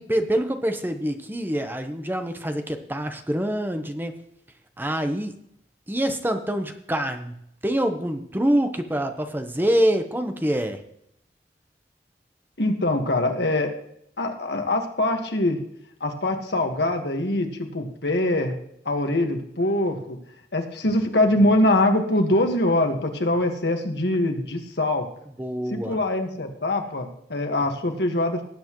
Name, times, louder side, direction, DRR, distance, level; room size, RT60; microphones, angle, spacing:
voice 1, 0.0-4.1 4.8-5.3 5.9-10.8 25.4-26.0, equal, 10° right, 6 dB, 1.0 m, -25 dB
voice 2, 12.6-13.7 14.2-15.6 16.0-18.5 18.8-20.2 20.5-25.0 25.7-28.4, left 1 dB, 70° left, 4 dB, 1.7 m, -23 dB
18.5 x 8.2 x 3.1 m, 0.73 s
head